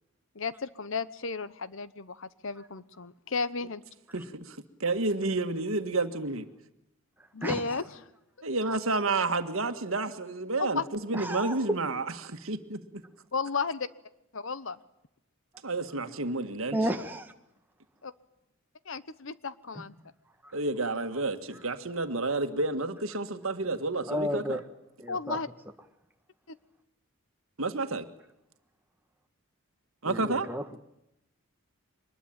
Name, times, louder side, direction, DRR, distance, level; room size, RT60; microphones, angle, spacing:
voice 1, 0.3-3.8 7.3-7.9 10.6-10.8 13.3-13.9 14.3-14.8 18.0-18.1 18.9-19.9 25.1-25.5 26.5-26.6, left 4 dB, 65° left, 16 dB, 1.0 m, -33 dB
voice 2, 4.1-6.4 8.4-13.0 15.6-16.8 20.5-24.6 27.6-28.1 30.0-30.5, right 3 dB, 75° right, 8 dB, 1.8 m, -30 dB
voice 3, 11.1-11.8 16.7-17.3 19.7-19.8 20.4-20.5 24.1-24.6 25.0-25.4 30.0-30.8, equal, 10° right, 5 dB, 1.5 m, -32 dB
24.0 x 21.0 x 8.9 m, 0.84 s
head